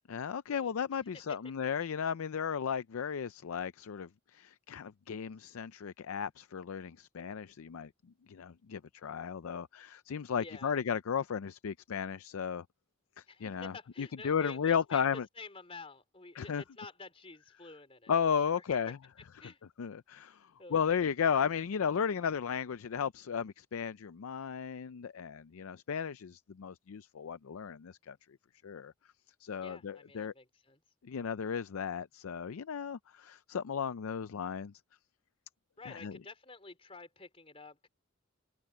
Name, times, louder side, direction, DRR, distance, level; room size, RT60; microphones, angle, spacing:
voice 1, 0.1-7.9 8.3-12.6 13.2-15.3 16.4-16.6 18.1-19.0 19.8-28.2 28.6-28.9 29.4-30.3 31.0-34.7 35.9-36.2, left 7 dB, 90° left, 0.4 m, -34 dB
voice 2, 10.4-10.8 13.3-18.6 19.4-19.6 20.2-21.1 29.6-30.8 35.8-37.9, left 3 dB, 30° left, 3.6 m, -50 dB
head